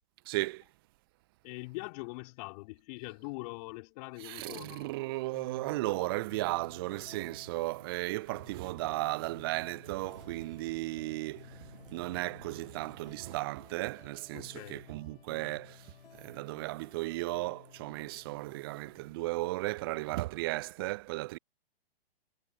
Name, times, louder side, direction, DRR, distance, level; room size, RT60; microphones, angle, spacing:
voice 1, 0.3-0.6 4.2-11.6 11.9-21.4, right 20 dB, 25° right, 0.4 m, -35 dB
voice 2, 1.4-4.9 14.3-14.8, left 26 dB, 40° left, 2.9 m, -43 dB
sound 1, 5.3-20.4, left 7 dB, 65° left, 3.6 m, -56 dB
sound 2, 6.8-13.4, right 9 dB, 65° right, 1.7 m, -55 dB
figure-of-eight pair, 115°, 30 cm